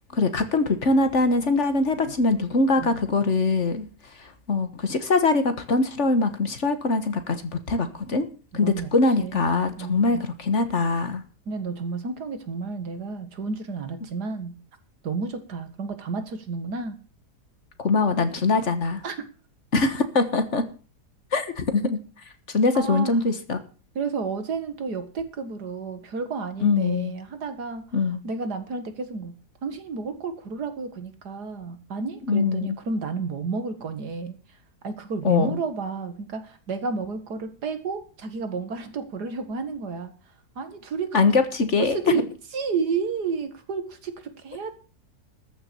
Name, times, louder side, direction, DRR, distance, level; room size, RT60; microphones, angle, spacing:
voice 1, 0.1-3.9 4.5-8.3 8.5-11.2 17.8-19.0 19.7-20.6 21.3-22.0 22.5-23.6 26.6-27.1 27.9-28.2 32.3-32.8 35.2-35.6 41.1-42.0, left 3 dB, 45° left, 9 dB, 1.6 m, -22 dB
voice 2, 8.5-8.9 9.2-9.4 9.8-10.2 11.5-14.5 15.0-17.0 19.0-19.2 22.7-23.3 24.0-29.3 29.6-34.4 34.8-40.1 40.6-41.2 41.8-42.2 42.5-44.7, right 4 dB, 80° right, 9 dB, 2.3 m, -31 dB
13.5 x 6.9 x 7.0 m, 0.37 s
omnidirectional pair, 1.7 m